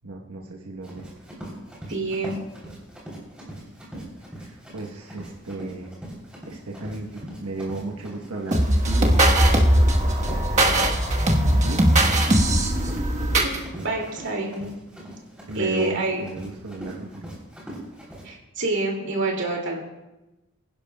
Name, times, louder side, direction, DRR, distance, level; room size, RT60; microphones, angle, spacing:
voice 1, 0.0-1.1 3.9-4.1 4.4-6.0 6.5-10.9 11.4-11.9 12.2-12.4 13.5-13.9 15.5-17.3, right 2 dB, 85° right, -1 dB, 1.1 m, -35 dB
Run, 0.8-18.2, right 1 dB, 5° right, 3.2 m, -40 dB
voice 2, 1.9-2.4 13.4-13.5 13.8-14.7 15.5-16.2 18.2-19.8, right 2 dB, 55° right, 0 dB, 2.3 m, -27 dB
sound 1, 8.5-13.6, right 1 dB, 30° right, 1.2 m, -19 dB
24.5 x 10.5 x 2.3 m, 0.99 s
head